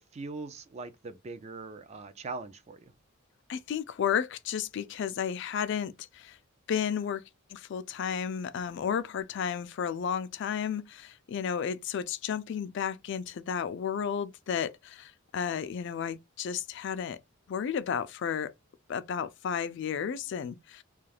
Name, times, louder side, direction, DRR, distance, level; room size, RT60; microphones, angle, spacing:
voice 1, 0.1-2.9, right 3 dB, 30° right, 0.3 m, -41 dB
voice 2, 3.5-6.4 6.7-7.2 7.5-17.2 17.5-18.5 18.9-20.8, left 7 dB, 60° left, 0.3 m, -32 dB
2.3 x 2.3 x 3.2 m
head